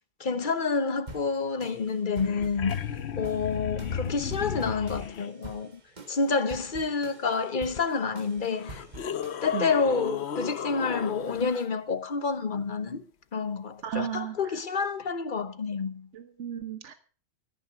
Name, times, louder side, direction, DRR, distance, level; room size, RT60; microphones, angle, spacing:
voice 1, 0.2-2.7 3.1-5.8 6.1-8.7 9.4-13.0 13.3-16.1, left 5 dB, 45° left, 1.2 m, -28 dB
sound 1, 1.1-9.8, right 2 dB, 35° right, 1.6 m, -47 dB
sound 2, 1.9-2.0 2.1-5.3 7.8-7.9 8.5-11.6 14.1-14.2, left 7 dB, 65° left, 1.1 m, -34 dB
voice 2, 13.8-14.6 16.1-16.9, right 9 dB, 70° right, 1.4 m, -34 dB
14.5 x 9.4 x 5.8 m
omnidirectional pair, 1.3 m